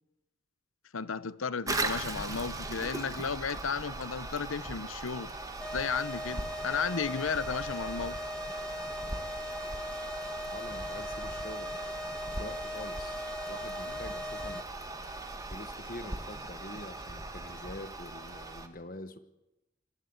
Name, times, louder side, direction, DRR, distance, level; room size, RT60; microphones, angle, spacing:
voice 1, 0.9-5.3 5.7-8.2, left 5 dB, 80° left, 0.8 m, -34 dB
Toilet flush, 1.7-18.7, right 2 dB, 15° right, 1.5 m, -39 dB
sound 1, 5.6-14.6, left 1 dB, 5° left, 0.9 m, -39 dB
voice 2, 10.5-11.7 12.3-14.7 15.5-19.2, left 1 dB, 40° left, 1.1 m, -45 dB
27.0 x 12.0 x 9.4 m
head